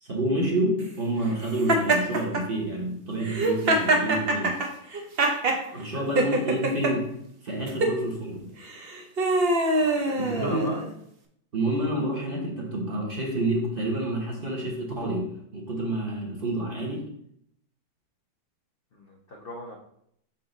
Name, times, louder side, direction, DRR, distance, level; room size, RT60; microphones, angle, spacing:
voice 1, 0.0-4.6 5.7-8.5 10.1-10.8 11.5-17.1, right 1 dB, 35° right, -2 dB, 1.2 m, -29 dB
Laughter, 1.7-2.4 3.2-5.6 6.2-6.9 7.7-8.0 8.7-10.9, right 2 dB, 50° right, 0.7 m, -24 dB
voice 2, 5.6-6.0 7.7-7.8 9.6-10.8 18.9-19.8, left 1 dB, 75° left, -1 dB, 0.5 m, -40 dB
6.2 x 4.3 x 3.9 m, 0.71 s
omnidirectional pair, 2.1 m